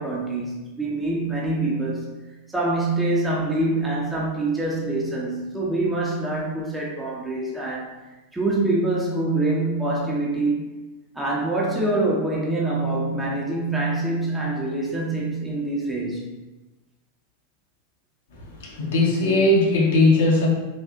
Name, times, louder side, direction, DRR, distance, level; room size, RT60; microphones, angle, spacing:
voice 1, 0.0-2.1 2.5-7.9 8.3-10.6 11.1-16.3, right 2 dB, 5° right, -4 dB, 0.6 m, -25 dB
voice 2, 18.3-20.5, left 2 dB, 55° left, -3 dB, 0.8 m, -19 dB
3.3 x 2.5 x 2.5 m, 1.1 s
figure-of-eight pair, 90°, 0 cm